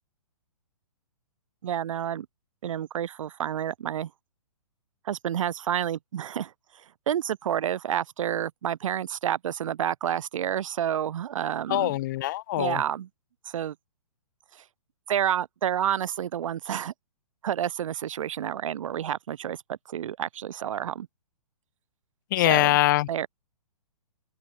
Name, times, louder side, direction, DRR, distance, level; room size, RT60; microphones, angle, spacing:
voice 1, 1.6-2.3 2.6-4.1 5.1-6.5 7.1-12.0 12.6-13.1 13.5-13.7 15.1-16.9 17.4-21.1 22.4-22.8 23.1-23.3, right 10 dB, 60° right, 0.8 m, -29 dB
voice 2, 11.7-12.8 22.3-23.3, left 16 dB, 30° left, 0.6 m, -23 dB
hypercardioid pair, 150°, 19 cm